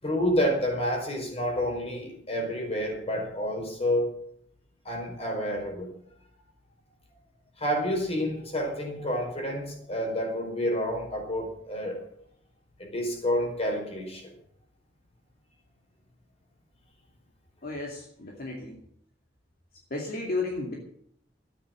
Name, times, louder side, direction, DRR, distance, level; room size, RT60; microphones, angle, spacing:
voice 1, 0.0-4.2 4.8-5.9 7.6-12.0 12.8-14.3, equal, 35° left, 2 dB, 4.8 m, -29 dB
voice 2, 17.6-18.8 19.9-20.7, left 3 dB, 50° left, -1 dB, 2.5 m, -33 dB
13.5 x 9.9 x 7.6 m, 0.68 s
head